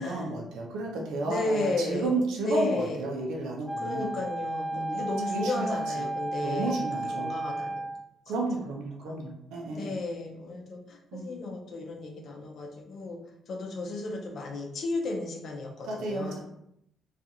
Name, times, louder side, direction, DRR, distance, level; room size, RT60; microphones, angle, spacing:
voice 1, 0.0-4.2 4.7-5.0 5.3-6.1 6.4-7.3 8.3-9.9 11.1-11.4 15.9-16.4, right 2 dB, 90° right, -1 dB, 0.6 m, -32 dB
voice 2, 1.2-2.1 2.5-3.0 3.8-6.8 7.2-7.9 9.1-9.2 9.7-13.2 13.5-16.4, left 2 dB, 60° left, 1 dB, 0.6 m, -34 dB
Wind instrument woodwind instrument, 3.7-8.1, right 2 dB, 10° right, 0.4 m, -33 dB
2.4 x 2.4 x 2.7 m, 0.76 s
cardioid pair, 90°, 0 cm